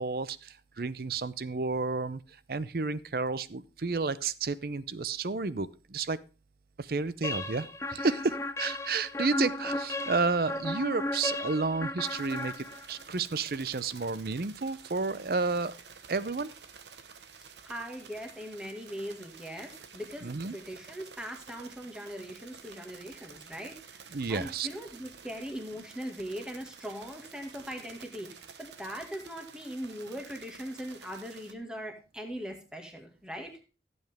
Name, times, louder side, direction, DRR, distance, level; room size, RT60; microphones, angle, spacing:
voice 1, 0.0-2.2 2.5-6.2 6.8-15.7 16.1-16.5 20.2-20.6 24.1-24.7, right 4 dB, 55° right, 16 dB, 0.6 m, -31 dB
sound 1, 7.2-13.1, left 2 dB, 15° left, 0.5 m, -35 dB
sound 2, 12.0-31.5, right 6 dB, 80° right, 1.1 m, -51 dB
voice 2, 17.7-33.5, equal, 5° right, 3 dB, 1.9 m, -40 dB
15.0 x 8.0 x 3.5 m, 0.33 s
head